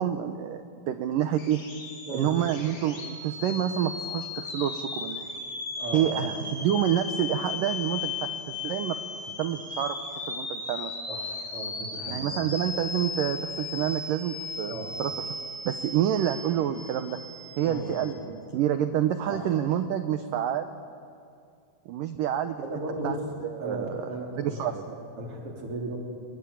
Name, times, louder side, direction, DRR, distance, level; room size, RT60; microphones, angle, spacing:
voice 1, 0.0-1.6 2.1-5.3 5.9-9.0 9.4-10.0 10.3-10.9 12.1-14.7 15.0-15.1 15.7-17.2 17.6-20.8 21.9-22.6 23.0-23.2 23.4-24.8, right 10 dB, 80° right, 9 dB, 1.9 m, -28 dB
sound 1, 1.4-18.1, left 3 dB, 25° left, 3.0 m, -36 dB
voice 2, 5.8-6.5 11.1-12.4 14.7-14.9 17.6-18.1 19.3-19.6 22.6-23.2 23.6-26.0, right 2 dB, 35° right, 0 dB, 4.1 m, -36 dB
24.0 x 21.5 x 8.7 m, 2.4 s
omnidirectional pair, 5.0 m